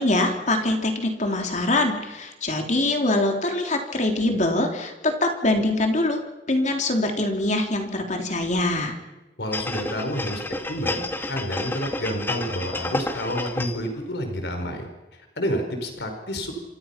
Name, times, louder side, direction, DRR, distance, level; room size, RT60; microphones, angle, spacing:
voice 1, 0.0-6.2 6.5-9.0, left 2 dB, 45° left, 3 dB, 3.3 m, -23 dB
voice 2, 9.4-10.4 10.7-16.5, equal, 70° left, 5 dB, 5.0 m, -29 dB
sound 1, 9.5-13.9 14.3-14.4, left 2 dB, 15° left, 2.1 m, -30 dB
28.0 x 26.5 x 5.9 m, 1.1 s
head